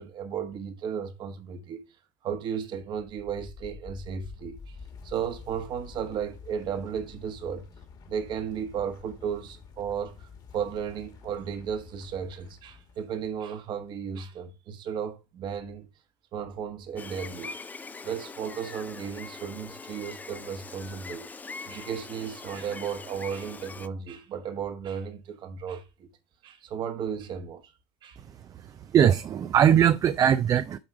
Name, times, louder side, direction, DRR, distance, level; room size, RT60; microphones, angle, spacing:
voice 1, 0.0-1.8 2.2-4.8 5.0-7.7 8.1-15.9 16.3-17.5 18.0-21.2 21.7-26.1 26.4-27.7 28.0-28.2, right 7 dB, 50° right, 1.3 m, -34 dB
sound 1, 2.9-13.7, left 5 dB, 45° left, 1.8 m, -48 dB
Gull seagull, 17.0-23.9, left 4 dB, 15° left, 0.5 m, -42 dB
voice 2, 28.4-30.8, right 9 dB, 35° right, 0.4 m, -21 dB
8.8 x 3.2 x 4.9 m
supercardioid pair, 90°, 10 cm